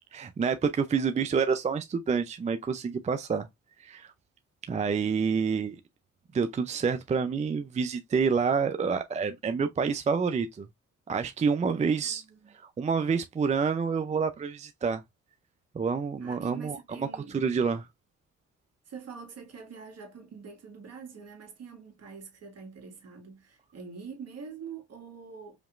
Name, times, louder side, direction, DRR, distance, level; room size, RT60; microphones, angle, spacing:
voice 1, 0.1-3.5 3.8-4.1 4.7-5.8 6.3-10.7 11.1-12.2 12.5-15.0 15.7-17.1 17.3-17.9, right 5 dB, 25° right, 0.4 m, -28 dB
voice 2, 12.0-12.6 16.2-17.4 18.9-25.6, right 6 dB, 55° right, 1.7 m, -45 dB
5.2 x 2.9 x 2.4 m
cardioid pair, 90°, 30 cm